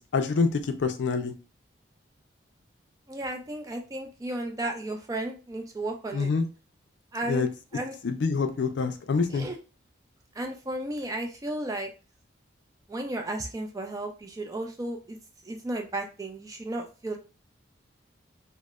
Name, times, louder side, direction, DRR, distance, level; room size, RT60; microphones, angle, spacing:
voice 1, 0.0-1.3 6.1-6.4 7.3-7.5 8.0-9.5, left 4 dB, 70° left, 7 dB, 0.4 m, -26 dB
voice 2, 3.1-6.3 7.1-7.9 9.3-9.6 10.4-11.9 12.9-15.2 15.5-17.2, right 1 dB, 20° right, 4 dB, 0.3 m, -34 dB
3.0 x 2.0 x 2.3 m, 0.33 s
head